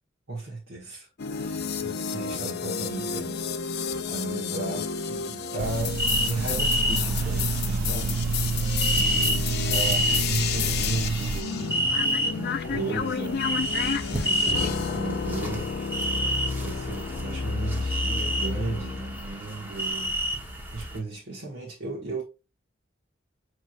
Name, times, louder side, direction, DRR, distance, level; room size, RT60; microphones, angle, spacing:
voice 1, 0.3-8.5 8.9-11.9 12.3-13.4 13.7-16.2 16.6-20.2 20.7-22.2, right 3 dB, 55° right, 1.3 m, -35 dB
sound 1, 1.2-19.2, left 6 dB, 55° left, 0.5 m, -31 dB
sound 2, 5.6-11.4, right 4 dB, 70° right, 0.4 m, -28 dB
sound 3, 6.0-21.0, equal, 10° right, 0.9 m, -30 dB
6.2 x 3.1 x 2.4 m
head